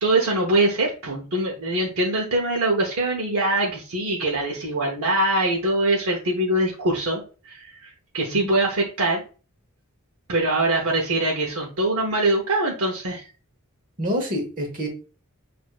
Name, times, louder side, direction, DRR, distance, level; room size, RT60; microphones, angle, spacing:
voice 1, 0.0-9.2 10.3-13.2, right 2 dB, 70° right, -1 dB, 0.8 m, -23 dB
voice 2, 14.0-14.9, equal, 35° right, 2 dB, 1.1 m, -27 dB
6.1 x 2.6 x 2.4 m, 0.35 s
head